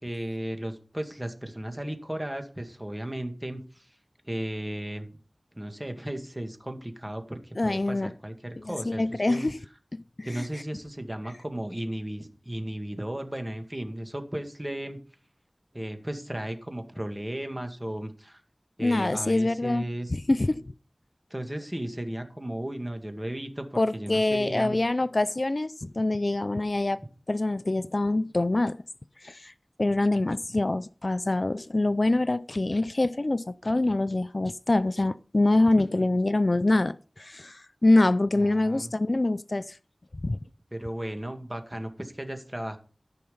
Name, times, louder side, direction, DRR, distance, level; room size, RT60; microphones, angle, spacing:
voice 1, 0.0-3.9 4.3-5.1 5.5-9.5 10.2-15.0 15.7-18.4 18.8-20.1 21.3-23.7 23.9-24.7 35.9-36.0 38.3-38.9 40.7-42.8, right 1 dB, 20° right, 2.0 m, -35 dB
voice 2, 7.6-8.1 8.6-9.6 9.9-10.5 18.8-20.6 23.8-28.8 29.2-29.5 29.8-39.8 40.2-40.4, left 2 dB, 55° left, 0.4 m, -25 dB
13.5 x 5.7 x 5.4 m
wide cardioid pair, 50°, 0 cm